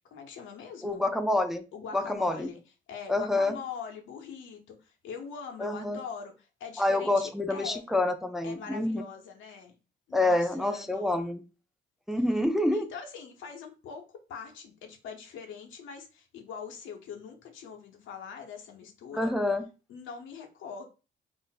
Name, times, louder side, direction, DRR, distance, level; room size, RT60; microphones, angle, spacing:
voice 1, 0.1-1.0 1.7-2.6 2.9-7.9 8.4-9.7 10.1-11.3 12.7-19.3 19.9-20.8, left 6 dB, 80° left, 0.7 m, -43 dB
voice 2, 0.8-1.7 1.9-2.5 3.1-3.6 5.6-6.0 6.8-9.0 10.1-11.4 12.1-12.9 19.1-19.6, left 2 dB, ahead, 0.3 m, -27 dB
2.5 x 2.0 x 3.9 m
cardioid pair, 90°, 20 cm